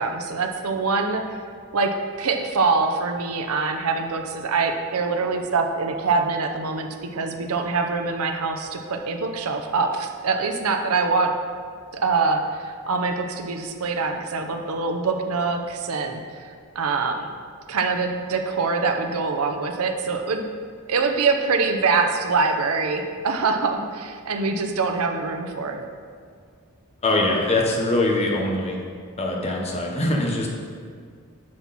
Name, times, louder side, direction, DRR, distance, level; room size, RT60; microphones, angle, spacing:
voice 1, 0.0-1.4 1.7-11.3 11.9-16.5 16.7-17.3 17.7-20.5 20.9-25.9, right 4 dB, 80° right, 4 dB, 0.8 m, -24 dB
voice 2, 27.0-28.8 29.2-30.5, left 2 dB, 30° left, -1 dB, 1.2 m, -22 dB
9.6 x 6.0 x 4.2 m, 2.1 s
head